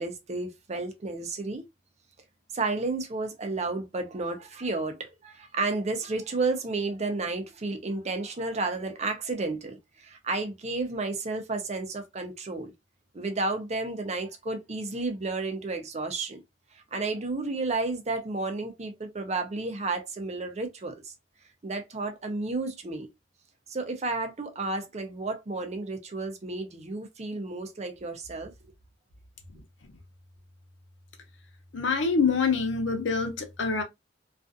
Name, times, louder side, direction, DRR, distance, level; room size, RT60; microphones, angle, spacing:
voice 1, 0.0-1.7 2.5-12.7 13.1-16.4 16.9-21.1 21.6-23.1 23.7-28.5, right 3 dB, 40° right, 0.6 m, -32 dB
voice 2, 29.5-30.0 31.7-33.8, left 5 dB, 80° left, 0.6 m, -26 dB
2.4 x 2.4 x 2.4 m
head